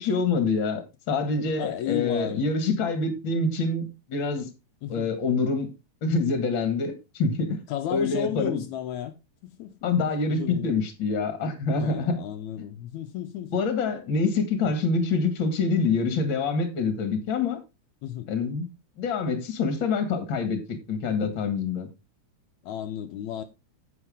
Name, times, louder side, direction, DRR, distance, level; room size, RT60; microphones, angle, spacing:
voice 1, 0.0-4.5 4.9-5.7 6.0-7.6 7.9-8.6 9.8-12.2 13.5-17.6 18.3-18.7 19.0-21.9, left 4 dB, 45° left, 2.3 m, -26 dB
voice 2, 1.6-2.4 4.8-5.1 7.7-9.1 9.6-9.7 10.3-10.7 11.8-13.6 18.0-18.3 22.6-23.4, left 11 dB, 80° left, 2.1 m, -33 dB
9.4 x 8.2 x 3.5 m
omnidirectional pair, 3.3 m